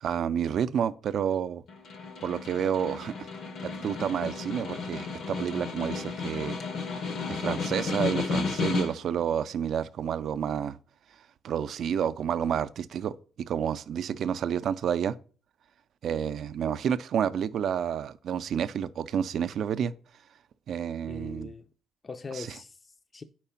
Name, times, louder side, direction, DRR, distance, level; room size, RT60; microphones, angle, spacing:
voice 1, 0.0-1.6 2.2-3.3 3.6-6.6 7.3-10.8 11.4-15.2 16.0-19.9 20.7-21.5 22.3-22.5, right 8 dB, 65° right, 0.4 m, -30 dB
Snare drum, 1.7-9.2, left 4 dB, 75° left, 0.9 m, -33 dB
voice 2, 21.1-21.7 22.0-23.2, left 4 dB, 30° left, 0.4 m, -41 dB
4.9 x 4.6 x 5.6 m
cardioid pair, 90°, 0 cm